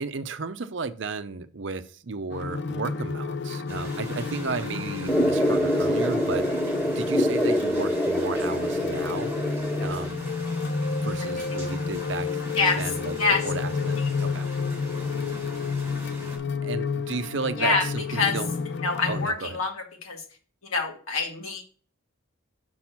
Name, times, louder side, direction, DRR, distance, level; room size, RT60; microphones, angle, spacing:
voice 1, 0.0-6.5 7.0-9.4 9.8-10.3 11.0-12.3 12.8-13.2 13.4-14.5 16.6-18.6 19.1-19.6, right 4 dB, 60° right, 0.6 m, -34 dB
sound 1, 2.3-19.3, left 4 dB, 55° left, 0.5 m, -31 dB
sound 2, 3.7-16.4, right 1 dB, 15° right, 3.3 m, -43 dB
sound 3, 5.1-10.1, equal, 5° left, 0.6 m, -25 dB
voice 2, 18.8-19.7 20.0-20.2 20.7-21.6, left 4 dB, 90° left, 1.9 m, -25 dB
6.2 x 6.0 x 5.8 m
head